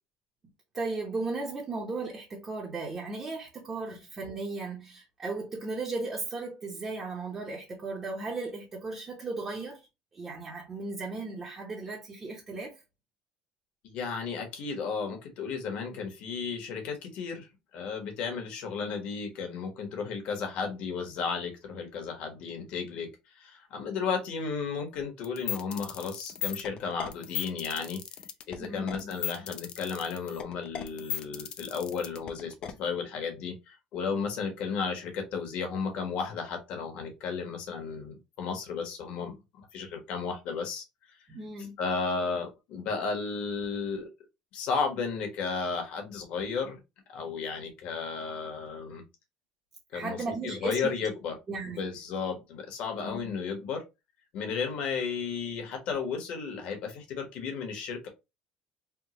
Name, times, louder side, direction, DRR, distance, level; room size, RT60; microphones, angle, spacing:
voice 1, 0.7-9.8 10.1-12.7 28.6-29.1 41.3-41.7 49.9-50.9 51.5-51.8 53.0-53.3, right 3 dB, 25° right, 0.8 m, -36 dB
voice 2, 13.8-23.1 23.3-28.0 28.5-39.3 39.7-40.8 41.8-44.1 44.5-46.8 47.1-49.0 49.9-50.2 50.4-51.3 51.7-53.8 54.3-58.1, left 5 dB, 60° left, 1.2 m, -34 dB
sound 1, 25.2-32.7, left 10 dB, 45° left, 0.4 m, -36 dB
3.5 x 2.2 x 2.9 m
cardioid pair, 140°, 2 cm